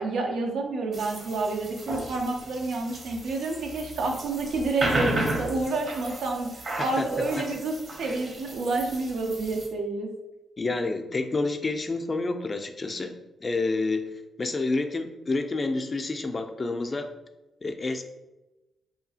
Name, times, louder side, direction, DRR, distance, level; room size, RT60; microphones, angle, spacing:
voice 1, 0.0-6.5 6.8-10.1, right 3 dB, 85° right, 1 dB, 0.4 m, -29 dB
sound 1, 0.9-9.7, right 1 dB, 50° right, 0.7 m, -34 dB
voice 2, 10.6-13.1 13.4-14.0 14.4-17.1 17.6-18.0, left 3 dB, 35° left, 6 dB, 0.3 m, -28 dB
2.7 x 2.3 x 2.7 m, 1.0 s
cardioid pair, 75°, 0 cm